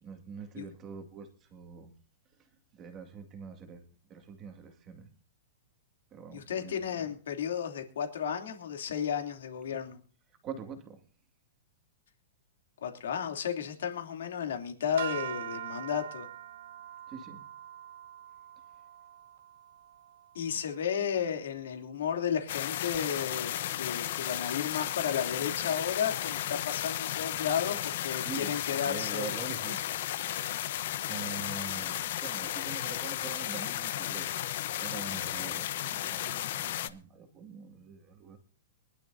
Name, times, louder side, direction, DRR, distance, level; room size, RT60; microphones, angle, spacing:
voice 1, 0.0-1.9 2.3-3.8 4.1-5.1 6.1-7.1 10.4-11.0 17.1-17.4 28.2-28.6 28.8-29.8 31.1-34.4 34.8-38.4, right 6 dB, 20° right, 5 dB, 2.1 m, -44 dB
voice 2, 6.3-10.0 12.8-16.3 20.3-29.3, left 8 dB, 80° left, 4 dB, 2.9 m, -33 dB
sound 1, 15.0-21.3, right 11 dB, 60° right, 1.1 m, -43 dB
sound 2, 22.5-36.9, left 12 dB, 50° left, 0.8 m, -34 dB
23.5 x 12.0 x 2.7 m, 0.41 s
supercardioid pair, 170°, 0 cm